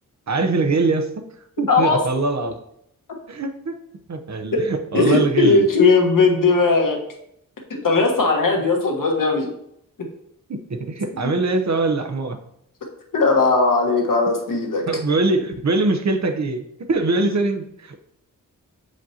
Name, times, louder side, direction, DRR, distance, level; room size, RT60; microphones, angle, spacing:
voice 1, 0.3-1.2 1.6-2.6 3.3-3.8 4.1-5.7 10.5-12.4 14.9-18.0, right 3 dB, 55° right, 7 dB, 0.7 m, -22 dB
voice 2, 1.7-2.0 4.5-4.6 4.9-7.0 7.8-9.5 13.1-14.8, left 3 dB, 70° left, 1 dB, 1.3 m, -18 dB
7.6 x 5.0 x 2.8 m, 0.76 s
wide cardioid pair, 105°, 34 cm